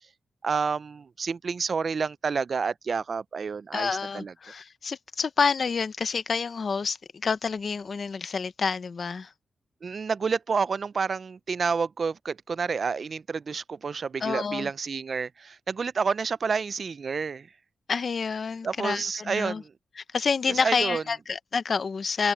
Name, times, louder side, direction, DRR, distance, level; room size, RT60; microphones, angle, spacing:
voice 1, 0.4-4.3 9.8-17.5 18.6-19.7 20.5-21.0, right 5 dB, 40° right, 0.3 m, -29 dB
voice 2, 3.7-7.0 7.2-9.3 14.2-14.7 17.9-19.6 20.0-22.3, left 5 dB, 40° left, 0.6 m, -28 dB
wide cardioid pair, 180°, 0 cm